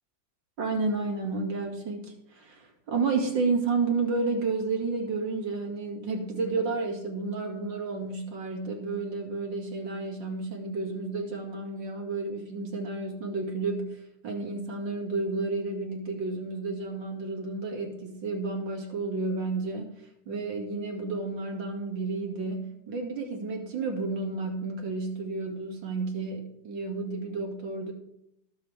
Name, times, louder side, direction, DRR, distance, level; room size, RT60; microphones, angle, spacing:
voice 1, 0.6-27.9, right 3 dB, 85° right, 1 dB, 2.8 m, -31 dB
20.0 x 7.0 x 3.4 m, 0.80 s
omnidirectional pair, 2.0 m